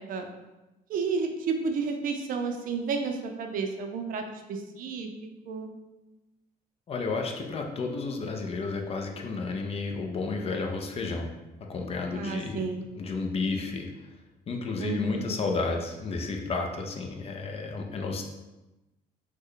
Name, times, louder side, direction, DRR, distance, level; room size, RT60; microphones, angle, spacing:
voice 1, 0.9-5.7 12.1-12.8 14.8-15.4, right 4 dB, 55° right, 4 dB, 0.5 m, -31 dB
voice 2, 6.9-11.3 11.6-12.6 13.0-14.1 14.5-18.2, left 3 dB, 35° left, 3 dB, 0.4 m, -32 dB
3.0 x 2.1 x 3.7 m, 1.0 s
cardioid pair, 110°, 17 cm